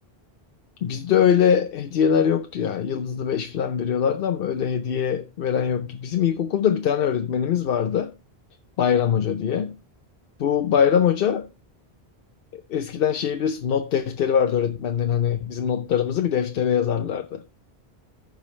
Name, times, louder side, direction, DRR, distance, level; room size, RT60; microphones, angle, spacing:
voice 1, 0.8-8.1 8.8-9.7 10.4-11.5 12.5-17.4, left 8 dB, 65° left, 0.8 m, -22 dB
15.0 x 5.1 x 3.1 m
omnidirectional pair, 1.1 m